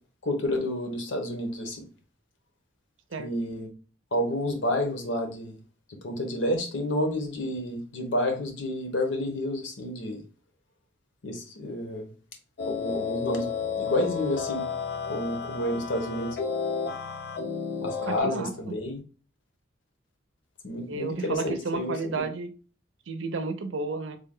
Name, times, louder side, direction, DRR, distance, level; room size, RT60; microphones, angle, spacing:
voice 1, 0.2-1.8 3.2-3.7 4.1-5.6 6.0-10.2 11.2-12.1 12.7-13.5 13.8-14.6 15.1-16.4 17.8-19.0 20.6-22.2, left 1 dB, 75° left, 0.9 m, -30 dB
sound 1, 12.6-18.2, left 6 dB, 55° left, 0.5 m, -32 dB
voice 2, 18.0-18.7 20.9-22.5 23.1-24.2, right 3 dB, 85° right, 0.6 m, -32 dB
3.4 x 2.2 x 3.7 m
head